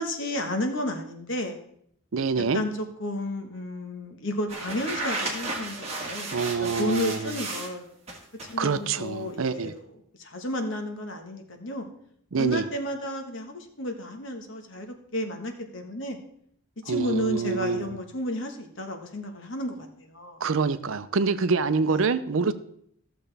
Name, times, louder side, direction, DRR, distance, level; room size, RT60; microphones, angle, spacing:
voice 1, 0.0-1.6 2.4-7.8 8.5-9.8 10.2-11.9 12.4-16.2 16.8-20.4 21.9-22.0, left 1 dB, 60° left, 4 dB, 1.3 m, -32 dB
voice 2, 2.1-2.6 6.3-7.4 8.6-9.7 12.3-12.7 16.9-17.9 20.4-22.5, right 4 dB, 70° right, 12 dB, 0.6 m, -26 dB
sound 1, 4.5-7.7 8.1-8.6, right 2 dB, 30° right, 1.8 m, -33 dB
14.5 x 6.8 x 3.4 m, 0.69 s
head